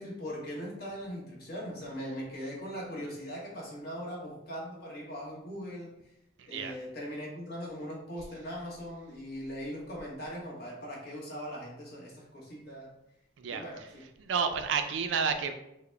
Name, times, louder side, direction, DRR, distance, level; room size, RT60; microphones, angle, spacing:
voice 1, 0.0-5.9 6.5-12.9 13.5-14.0, equal, 50° left, -4 dB, 1.0 m, -40 dB
voice 2, 6.4-6.8 13.4-13.9 14.2-15.5, right 6 dB, 65° right, 7 dB, 0.3 m, -31 dB
3.8 x 2.1 x 3.2 m, 0.83 s
head